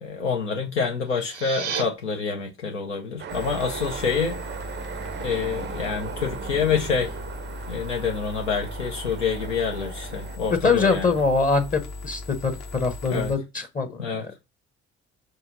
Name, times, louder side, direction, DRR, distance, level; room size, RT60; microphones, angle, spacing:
voice 1, 0.0-4.4 5.2-7.2 7.7-11.1 13.1-13.3 14.0-14.2, left 5 dB, 80° left, 0.6 m, -27 dB
sound 1, 1.0-1.8, right 7 dB, 80° right, 0.7 m, -32 dB
sound 2, 3.2-10.4, right 7 dB, 30° right, 0.5 m, -37 dB
sound 3, 3.3-13.4, left 2 dB, 50° left, 1.0 m, -38 dB
voice 2, 10.6-14.3, left 4 dB, 25° left, 0.8 m, -24 dB
5.3 x 2.9 x 2.5 m
figure-of-eight pair, 45°, 36 cm